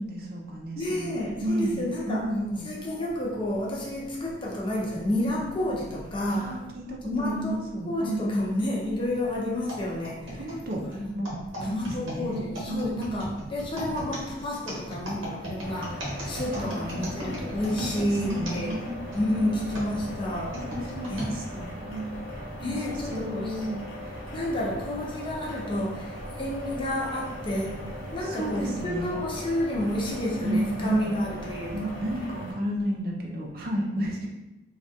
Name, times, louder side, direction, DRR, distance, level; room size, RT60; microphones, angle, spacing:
voice 1, 0.0-2.6 6.2-8.6 10.4-10.8 11.1-13.4 16.5-19.0 19.3-20.2 20.7-22.4 22.7-22.8 23.1-23.8 28.2-29.2 30.4-31.1 31.7-34.3, right 1 dB, 50° right, -1 dB, 0.5 m, -32 dB
voice 2, 0.8-2.3 2.6-6.5 7.0-7.6 7.9-10.2 11.0-11.1 11.6-16.0 16.3-18.7 19.1-20.6 21.1-21.3 22.6-23.5 24.3-26.0 26.3-27.8 28.1-31.9, left 1 dB, 25° left, -3 dB, 0.6 m, -30 dB
sound 1, 9.7-19.2 19.7-21.3 22.0-22.1 22.9-23.2, equal, 90° right, 0.9 m, -37 dB
sound 2, 15.6-32.5, equal, 85° left, 1.0 m, -39 dB
3.3 x 2.4 x 2.6 m, 0.98 s
head